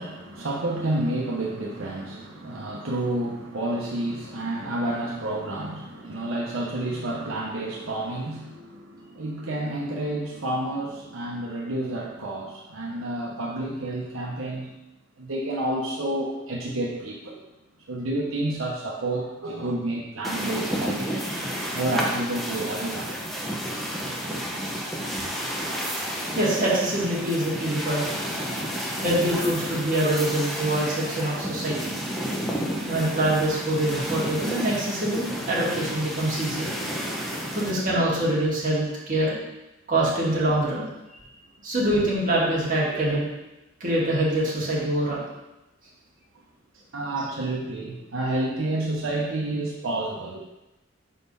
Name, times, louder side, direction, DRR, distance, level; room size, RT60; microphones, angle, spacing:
voice 1, 0.0-14.7 15.2-17.4 17.9-23.1 46.9-50.4, right 1 dB, 85° right, -3 dB, 1.0 m, -30 dB
sound 1, 20.2-37.7, equal, ahead, 0.8 m, -31 dB
voice 2, 26.3-28.1 29.0-31.9 32.9-36.7 37.5-39.4 39.9-40.9 41.6-43.3 43.8-45.2, right 1 dB, 40° right, -6 dB, 2.0 m, -24 dB
5.5 x 4.2 x 5.4 m, 0.98 s
head